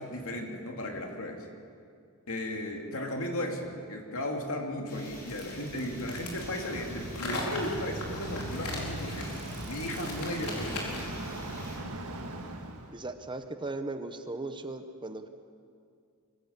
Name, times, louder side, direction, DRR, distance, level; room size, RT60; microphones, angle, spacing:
voice 1, 0.0-1.5 2.3-9.3 9.6-11.3, left 1 dB, 65° left, 2 dB, 2.7 m, -35 dB
sound 1, 4.9-11.8, left 1 dB, 45° left, 5.6 m, -47 dB
sound 2, 5.3-11.2, left 2 dB, 85° left, 4.4 m, -39 dB
Bicycle, 5.5-13.0, right 1 dB, 80° right, 1.8 m, -40 dB
voice 2, 12.9-15.3, right 2 dB, 20° right, 8 dB, 0.9 m, -37 dB
24.5 x 15.0 x 8.3 m, 2.3 s
head